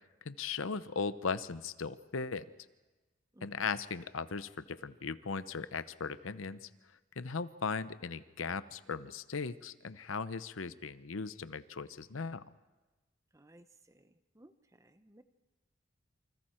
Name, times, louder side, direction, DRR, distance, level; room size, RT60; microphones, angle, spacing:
voice 1, 0.2-2.4 3.4-6.7 7.2-12.4, left 5 dB, 90° left, 14 dB, 0.8 m, -38 dB
voice 2, 13.3-13.7 13.9-14.1 14.4-14.5 14.8-15.2, right 1 dB, 15° right, 10 dB, 0.7 m, -58 dB
28.5 x 25.5 x 4.5 m, 1.2 s
head